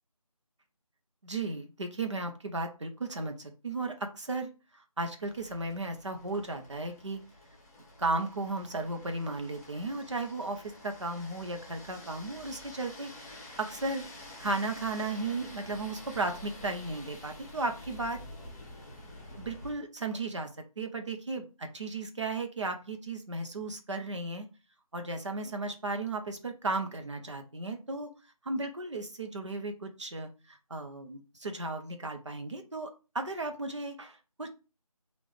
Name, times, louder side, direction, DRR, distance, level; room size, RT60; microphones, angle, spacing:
voice 1, 1.2-4.5 5.0-7.2 8.0-13.1 13.6-14.1 14.4-18.2 19.4-20.5 20.8-24.5 24.9-28.1 28.4-34.5, right 2 dB, 50° right, 5 dB, 0.8 m, -35 dB
sound 1, 5.2-19.8, left 1 dB, 25° left, 1.2 m, -49 dB
3.6 x 2.5 x 3.3 m, 0.32 s
figure-of-eight pair, 170°, 19 cm